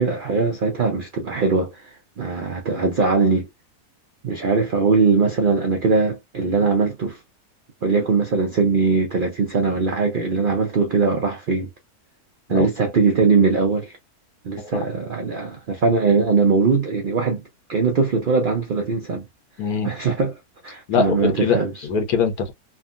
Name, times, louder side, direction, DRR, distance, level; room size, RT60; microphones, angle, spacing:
voice 1, 0.0-3.5 4.2-7.2 7.8-11.7 12.5-13.9 14.4-17.4 17.7-19.2 19.8-20.3 20.6-21.7, right 4 dB, 55° right, 0.6 m, -21 dB
voice 2, 19.6-19.9 20.9-22.5, left 6 dB, 75° left, 1.4 m, -23 dB
3.5 x 2.1 x 2.4 m
omnidirectional pair, 1.6 m